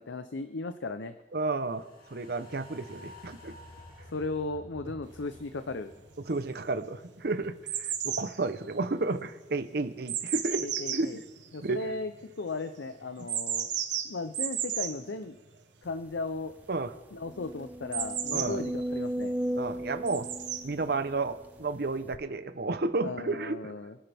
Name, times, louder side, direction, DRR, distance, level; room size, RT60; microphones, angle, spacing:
voice 1, 0.0-1.1 4.1-5.9 10.6-11.2 11.5-12.1 12.4-13.7 14.0-15.4 15.8-16.5 17.1-19.4 23.0-24.0, left 3 dB, 80° left, 9 dB, 0.7 m, -36 dB
voice 2, 1.3-1.8 2.1-3.5 6.2-11.2 11.6-11.8 16.7-16.9 18.3-18.6 19.6-20.3 20.6-23.7, right 3 dB, 60° right, 10 dB, 0.8 m, -32 dB
sound 1, 1.6-8.0 8.3-8.4, left 1 dB, 50° left, 2.5 m, -52 dB
sound 2, 5.3-5.4 6.1-6.7 6.9-12.2 13.2-15.0 17.9-19.0 20.1-20.6 21.6-21.7, right 9 dB, 75° right, 1.2 m, -33 dB
sound 3, 16.1-16.2 16.6-16.7 17.2-21.5 22.1-22.2, equal, 10° right, 0.6 m, -35 dB
27.0 x 10.0 x 3.5 m, 1.2 s
head